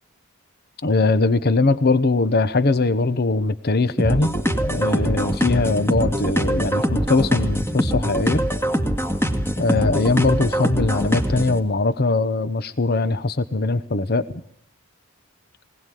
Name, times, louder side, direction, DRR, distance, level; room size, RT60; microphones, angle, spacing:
voice 1, 0.8-4.3 4.6-8.4 9.6-14.2, left 3 dB, 50° left, 14 dB, 0.9 m, -21 dB
sound 1, 4.0-11.6, equal, 10° left, 2.2 m, -23 dB
21.0 x 19.5 x 9.2 m, 0.65 s
head